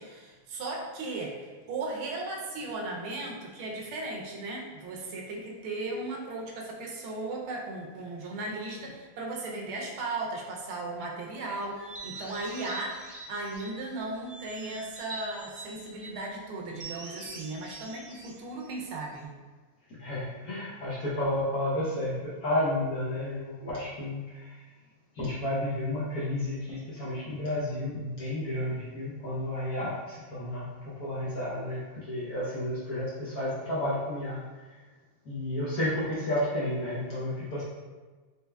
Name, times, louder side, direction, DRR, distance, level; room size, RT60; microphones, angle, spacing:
voice 1, 0.0-19.3, right 2 dB, 80° right, 0 dB, 1.5 m, -36 dB
sound 1, 11.7-13.8 14.2-16.1 16.7-19.2, right 3 dB, 50° right, 0.9 m, -44 dB
voice 2, 20.0-24.6 25.1-30.7 31.0-34.4 35.3-37.6, left 1 dB, 60° left, -8 dB, 1.1 m, -31 dB
4.3 x 3.5 x 2.2 m, 1.3 s
omnidirectional pair, 2.4 m